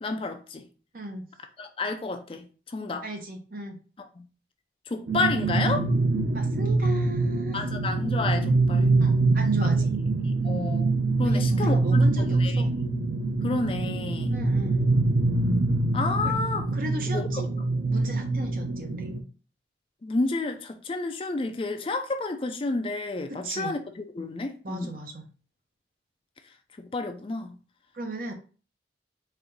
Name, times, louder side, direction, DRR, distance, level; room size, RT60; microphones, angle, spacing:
voice 1, 0.0-0.6 1.6-3.0 4.2-4.3 4.9-5.9 7.5-8.9 9.8-9.9 10.2-10.9 11.2-12.6 13.4-14.3 15.9-16.7 17.1-17.3 20.0-25.0 26.8-27.6, left 3 dB, 30° left, 0.4 m, -30 dB
voice 2, 0.9-1.2 3.0-3.8 6.3-7.6 9.0-9.9 11.2-12.7 14.3-14.8 16.2-16.3 16.7-17.5 17.9-19.1 23.3-23.8 24.6-25.3 27.9-28.3, right 1 dB, 50° right, 0.8 m, -36 dB
sound 1, 5.1-19.2, right 3 dB, 85° right, 0.6 m, -24 dB
4.2 x 2.6 x 3.8 m
head